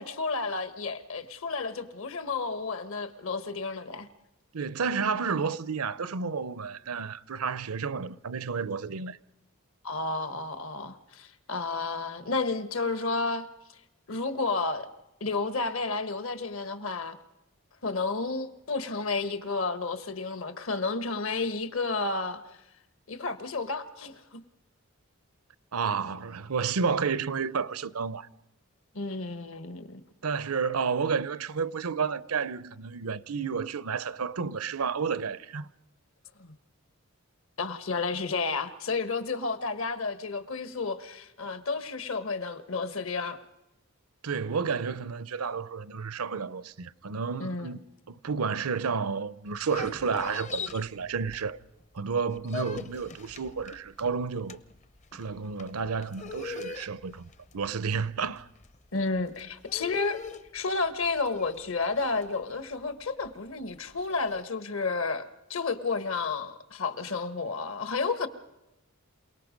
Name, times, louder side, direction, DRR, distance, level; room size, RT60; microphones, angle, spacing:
voice 1, 0.0-4.1 9.8-13.5 14.1-14.9 15.2-17.2 17.8-22.4 23.1-24.4 28.9-30.0 36.4-36.5 37.6-43.4 47.4-47.8 58.9-60.2 60.5-68.3, left 3 dB, 65° left, 1.3 m, -31 dB
voice 2, 4.5-9.2 25.7-28.3 30.2-35.7 44.2-47.8 48.1-51.6 51.9-54.6 55.1-58.5, right 5 dB, 80° right, 0.7 m, -31 dB
sound 1, 49.5-51.8 52.1-64.4, left 5 dB, 30° left, 0.6 m, -42 dB
28.0 x 18.5 x 5.2 m
head